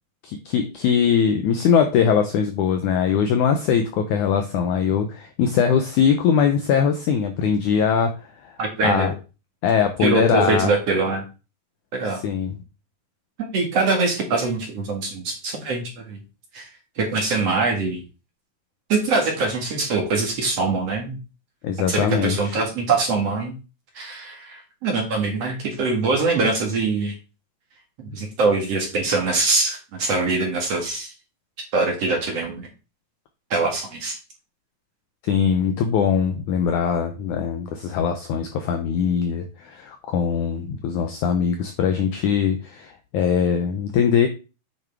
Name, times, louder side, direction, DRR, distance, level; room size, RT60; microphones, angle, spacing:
voice 1, 0.2-8.1 8.4-8.5 8.8-9.1 9.6-10.8 12.1-12.5 21.6-22.6 35.2-44.3, left 7 dB, 75° left, 6 dB, 1.8 m, -21 dB
voice 2, 8.6-9.1 10.0-11.2 11.9-12.2 13.4-16.2 16.5-16.7 17.0-18.0 18.9-21.2 21.9-23.5 23.9-27.2 28.0-31.1 31.7-32.7 33.5-34.2, right 3 dB, 50° right, 2 dB, 2.3 m, -23 dB
8.9 x 6.3 x 3.5 m, 0.31 s
omnidirectional pair, 4.4 m